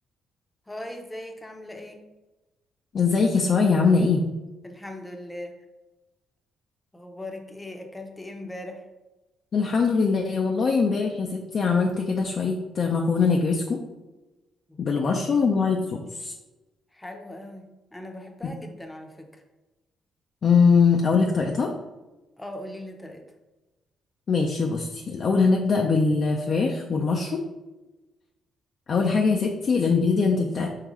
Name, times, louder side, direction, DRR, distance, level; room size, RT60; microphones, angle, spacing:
voice 1, 0.7-2.1 4.6-5.5 6.9-8.8 14.7-14.8 15.2-15.3 16.9-19.4 22.4-23.3, left 1 dB, 10° left, 4 dB, 0.7 m, -39 dB
voice 2, 2.9-4.2 9.5-13.8 14.8-16.3 20.4-21.7 24.3-27.4 28.9-30.7, left 4 dB, 50° left, 1 dB, 0.5 m, -22 dB
4.5 x 3.8 x 3.1 m, 1.1 s
cardioid pair, 90°, 0 cm